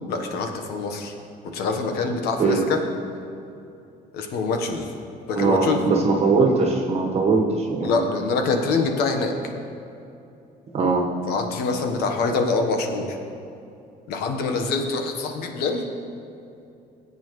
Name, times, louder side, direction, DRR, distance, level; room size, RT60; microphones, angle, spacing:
voice 1, 0.1-1.1 1.5-2.8 4.1-4.9 5.3-5.8 7.8-9.3 11.3-13.2 14.1-15.8, left 4 dB, 85° left, 4 dB, 1.2 m, -25 dB
voice 2, 5.4-8.0 10.7-11.1, right 4 dB, 40° right, -1 dB, 1.3 m, -20 dB
19.0 x 8.2 x 3.2 m, 2.7 s
cardioid pair, 145°, 16 cm